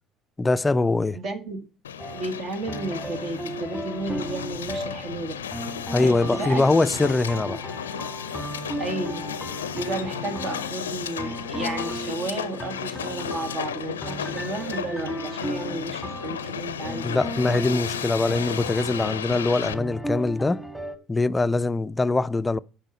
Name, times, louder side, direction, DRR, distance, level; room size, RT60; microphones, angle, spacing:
voice 1, 0.4-1.2 5.9-7.6 17.0-20.6 21.1-22.6, left 3 dB, 20° left, 0.4 m, -23 dB
voice 2, 1.1-1.6 2.1-5.3 6.0-6.7 7.5-7.6 8.8-9.3 9.7-17.2, right 2 dB, 50° right, 1.7 m, -33 dB
Hiss, 1.8-19.7, left 8 dB, 85° left, 0.5 m, -34 dB
sound 1, 2.0-21.0, right 1 dB, ahead, 1.5 m, -36 dB
8.9 x 4.8 x 6.2 m
figure-of-eight pair, 55°, 0 cm